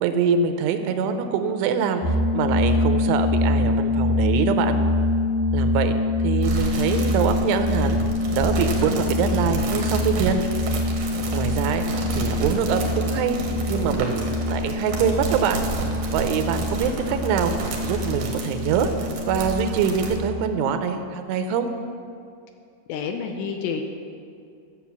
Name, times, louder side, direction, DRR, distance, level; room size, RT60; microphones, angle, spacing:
voice 1, 0.0-4.8 5.5-5.9 6.2-8.0 8.3-10.4 11.3-11.8 12.2-13.4 13.7-15.6 16.1-17.5 17.8-18.9 19.3-21.7, right 7 dB, 90° right, 8 dB, 3.2 m, -24 dB
sound 1, 2.0-20.7, left 2 dB, 55° left, 4.8 m, -25 dB
sound 2, 6.4-20.2, right 4 dB, 70° right, 1.7 m, -31 dB
voice 2, 22.9-23.8, left 6 dB, 80° left, 5 dB, 2.7 m, -28 dB
13.5 x 7.2 x 7.1 m, 2.4 s
omnidirectional pair, 5.4 m